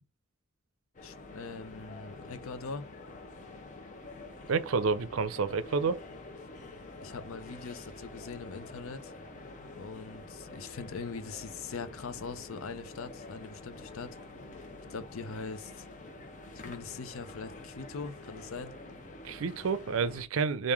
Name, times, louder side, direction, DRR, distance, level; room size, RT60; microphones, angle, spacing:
sound 1, 0.9-20.2, left 2 dB, 35° left, 0.7 m, -47 dB
voice 1, 1.0-2.8 6.9-9.1 9.7-14.2 14.9-15.9 16.5-18.7, left 4 dB, 85° left, 0.6 m, -42 dB
voice 2, 4.5-6.0 19.2-20.7, right 5 dB, 80° right, 0.5 m, -29 dB
3.6 x 2.5 x 4.6 m
head